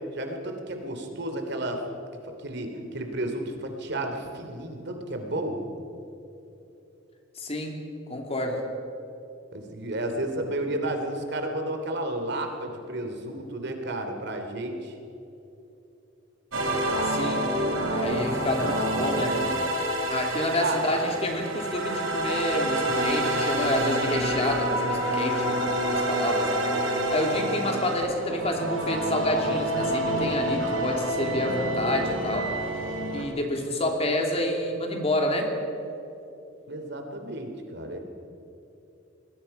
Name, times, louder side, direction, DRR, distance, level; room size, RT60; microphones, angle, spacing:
voice 1, 0.1-1.8 2.4-5.6 9.5-14.9 20.5-21.2 36.7-38.0, right 1 dB, 60° right, 4 dB, 3.1 m, -32 dB
voice 2, 7.3-7.7 8.1-8.6 16.8-17.4 17.9-19.3 20.1-32.5 33.1-35.5, left 1 dB, 30° left, 2 dB, 3.0 m, -29 dB
sound 1, 16.5-33.2, right 1 dB, 80° right, 4.1 m, -27 dB
26.5 x 20.5 x 5.6 m, 2.9 s
head